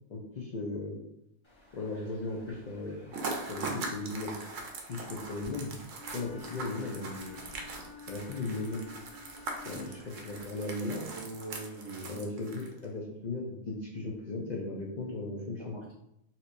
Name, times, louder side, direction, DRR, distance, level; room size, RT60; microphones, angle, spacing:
voice 1, 0.1-1.0 1.7-3.1 3.5-4.3 4.9-5.8 6.0-7.4 8.1-8.8 9.6-9.9 10.2-11.0 12.1-15.8, left 2 dB, 65° left, -3 dB, 0.4 m, -37 dB
sound 1, 1.4-10.5, equal, 25° left, 0.7 m, -57 dB
sound 2, 3.1-12.9, right 3 dB, 70° right, 1.0 m, -41 dB
Wind instrument woodwind instrument, 5.9-10.4, left 5 dB, 90° left, 1.9 m, -51 dB
voice 2, 9.7-10.1 10.9-12.2 15.6-15.9, right 2 dB, 45° right, -6 dB, 0.4 m, -43 dB
4.2 x 2.9 x 2.5 m, 0.80 s
omnidirectional pair, 1.4 m